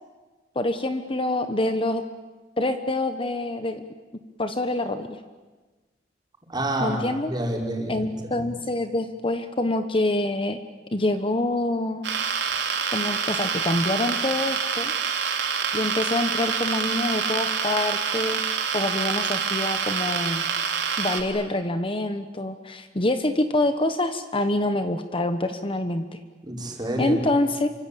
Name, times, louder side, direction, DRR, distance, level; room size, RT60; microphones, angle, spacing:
voice 1, 0.5-2.0 2.6-3.8 4.4-5.2 6.8-7.3 7.9-10.6 10.9-12.1 12.9-14.9 15.7-18.4 18.7-20.4 21.0-26.2 27.0-27.7, left 1 dB, 30° left, 9 dB, 1.1 m, -26 dB
voice 2, 6.5-8.5 26.4-27.2, right 1 dB, 25° right, 0 dB, 5.3 m, -29 dB
sound 1, 12.0-21.2, right 6 dB, 85° right, 3.1 m, -26 dB
27.5 x 25.0 x 8.6 m, 1.3 s
head